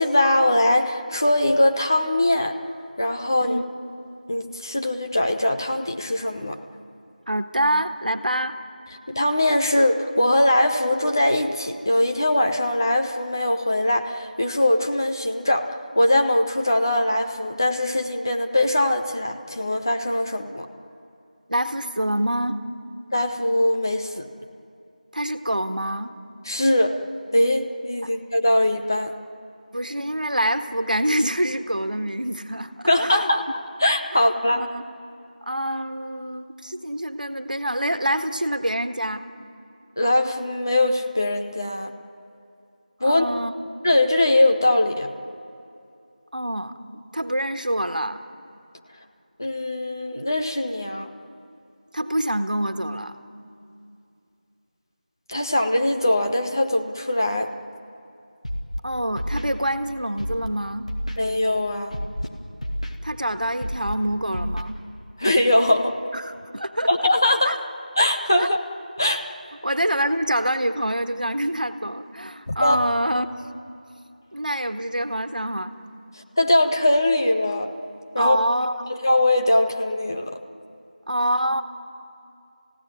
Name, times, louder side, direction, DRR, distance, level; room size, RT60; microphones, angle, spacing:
voice 1, 0.0-2.6 3.0-3.6 4.3-6.6 9.1-15.7 16.0-20.7 23.1-24.3 26.5-27.0 27.3-29.1 32.9-33.4 33.8-34.6 40.0-41.9 43.0-43.3 43.8-45.1 49.4-51.1 55.3-57.5 61.2-62.0 65.2-66.0 66.9-67.6 68.0-68.6 69.0-69.2 72.5-72.8 76.4-77.7 78.1-78.4 78.9-80.4, left 1 dB, 25° left, 4 dB, 0.9 m, -21 dB
voice 2, 7.3-8.6 21.5-22.6 25.1-26.1 28.0-28.1 29.7-33.3 34.1-34.2 34.5-34.9 35.5-39.2 43.0-43.5 46.3-46.7 47.1-48.2 51.9-53.1 58.8-60.9 63.0-64.8 66.1-67.1 67.4-67.6 68.4-68.5 69.6-73.3 74.3-75.7 78.2-78.9 81.1-81.6, right 1 dB, 75° right, 8 dB, 1.5 m, -26 dB
Scratching (performance technique), 58.4-58.8 59.2-59.5 60.2-60.5 60.9-61.2 61.9-62.3 62.6-62.9 63.6-63.9 64.3-64.6, equal, 55° left, 2.3 m, -29 dB
30.0 x 16.5 x 9.5 m, 2.6 s
figure-of-eight pair, 175°, 5 cm